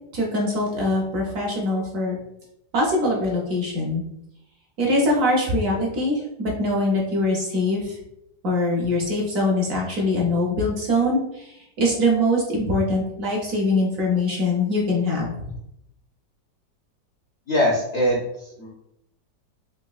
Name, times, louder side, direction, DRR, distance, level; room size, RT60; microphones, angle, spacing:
voice 1, 0.1-2.2 2.7-4.0 4.8-8.0 8.4-15.3, left 1 dB, 60° right, -2 dB, 0.9 m, -23 dB
voice 2, 17.5-18.7, equal, 70° left, -2 dB, 0.6 m, -22 dB
3.9 x 2.9 x 2.3 m, 0.82 s
omnidirectional pair, 1.9 m